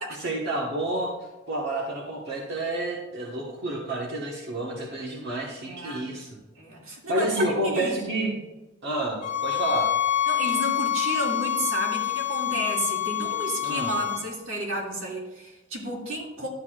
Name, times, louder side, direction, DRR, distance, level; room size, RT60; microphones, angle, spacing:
voice 1, 0.1-1.1 1.5-6.3 7.1-8.3 8.8-9.9 13.6-13.9, right 1 dB, 60° right, -3 dB, 1.4 m, -29 dB
voice 2, 5.6-6.1 6.6-8.4 10.3-16.5, right 1 dB, 85° right, -2 dB, 2.5 m, -32 dB
sound 1, 9.2-14.2, left 11 dB, 40° left, 0.7 m, -27 dB
12.0 x 8.4 x 2.5 m, 1.1 s
head